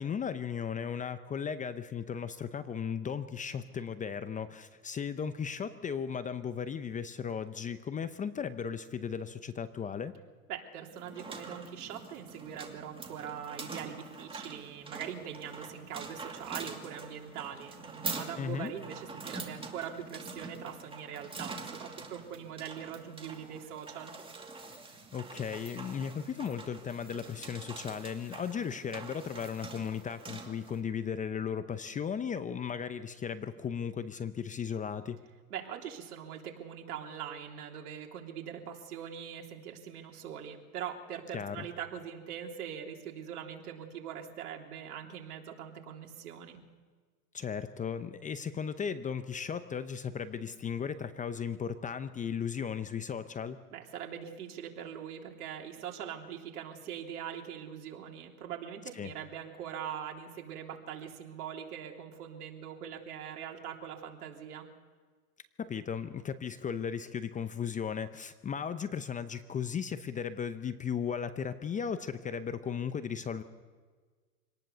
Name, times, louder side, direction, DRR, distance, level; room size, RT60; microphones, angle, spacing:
voice 1, 0.0-10.1 18.4-18.7 24.9-35.2 41.3-41.7 47.3-53.6 59.0-59.1 65.6-73.4, left 7 dB, 15° left, 11 dB, 0.7 m, -36 dB
voice 2, 10.5-24.1 35.5-46.6 53.7-64.7, right 9 dB, 75° right, 1 dB, 3.5 m, -42 dB
sound 1, 10.9-30.8, right 3 dB, 10° right, 2.4 m, -45 dB
25.5 x 19.0 x 6.9 m, 1.5 s
hypercardioid pair, 120°, 46 cm